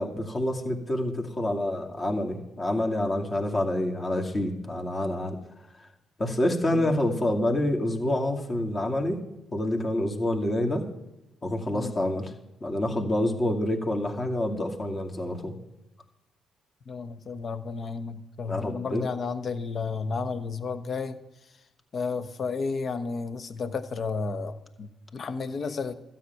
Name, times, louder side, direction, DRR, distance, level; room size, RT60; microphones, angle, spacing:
voice 1, 0.0-5.4 6.2-9.2 9.5-10.8 11.4-12.3 12.6-15.5 18.5-19.0, left 1 dB, 35° left, 2 dB, 2.4 m, -27 dB
voice 2, 16.9-21.2 21.9-25.9, left 4 dB, 55° left, 11 dB, 1.1 m, -32 dB
13.0 x 5.9 x 9.5 m, 0.95 s
supercardioid pair, 55°, 0 cm